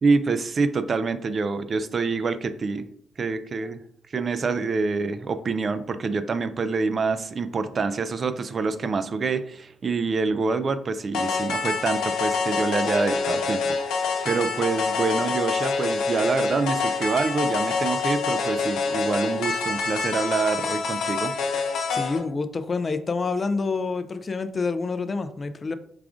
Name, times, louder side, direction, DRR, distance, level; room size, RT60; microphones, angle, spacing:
voice 1, 0.0-2.9 3.2-3.8 4.1-13.6 14.0-21.3, right 4 dB, 40° right, 12 dB, 0.3 m, -26 dB
sound 1, 11.1-22.2, left 4 dB, 80° left, 0.8 m, -26 dB
voice 2, 21.9-25.8, left 4 dB, 35° left, 11 dB, 0.4 m, -27 dB
4.8 x 2.4 x 3.6 m, 0.66 s
cardioid pair, 90°, 0 cm